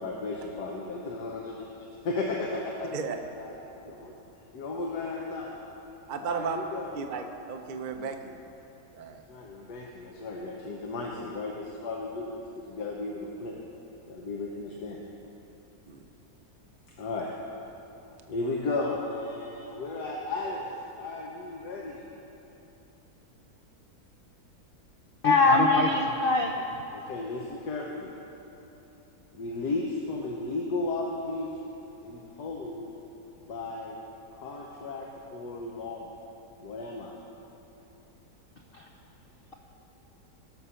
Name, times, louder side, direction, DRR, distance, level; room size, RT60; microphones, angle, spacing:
voice 1, 0.0-3.5 3.8-4.1 4.5-5.5 6.2-6.9 9.3-13.5 14.1-15.0 17.0-17.3 18.3-22.1 26.9-28.1 29.3-31.5 32.0-32.9 33.5-33.9 34.3-36.2 36.6-37.1, left 3 dB, 80° left, -2 dB, 1.6 m, -35 dB
voice 2, 6.1-6.6 6.9-8.4 9.0-9.2 15.9-16.1, right 6 dB, 65° right, 5 dB, 0.4 m, -34 dB
voice 3, 25.2-26.5, left 3 dB, 55° left, 2 dB, 0.6 m, -21 dB
18.5 x 6.3 x 5.7 m, 3.0 s
omnidirectional pair, 1.7 m